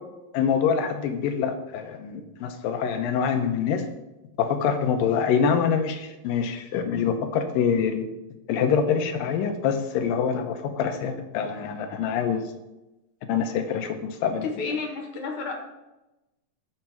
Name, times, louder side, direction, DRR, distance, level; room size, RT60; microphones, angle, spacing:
voice 1, 0.3-3.8 4.4-8.1 8.5-12.4 13.3-14.5, left 7 dB, 80° left, 6 dB, 2.7 m, -25 dB
voice 2, 14.4-15.5, left 4 dB, 65° left, 2 dB, 2.7 m, -31 dB
13.5 x 5.9 x 4.7 m, 0.99 s
omnidirectional pair, 4.1 m